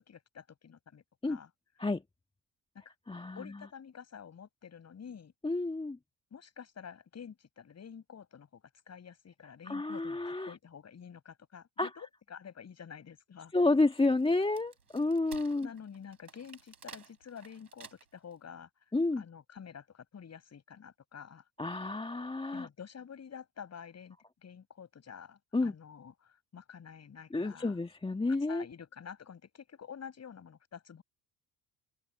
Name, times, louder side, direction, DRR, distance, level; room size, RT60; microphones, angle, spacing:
voice 1, 0.0-1.5 2.7-2.8 3.3-5.3 6.3-13.5 15.6-18.7 19.2-21.4 22.5-24.2 24.4-27.8 28.5-31.0, left 7 dB, 35° left, 7.7 m, -49 dB
voice 2, 3.1-3.5 5.4-6.0 9.7-10.5 11.8-11.9 13.5-15.7 18.9-19.2 21.6-22.7 25.5-25.7 27.3-28.7, left 2 dB, 10° left, 2.0 m, -30 dB
Wood, 13.6-18.3, right 6 dB, 85° right, 4.5 m, -53 dB
open air
figure-of-eight pair, 55°, 45 cm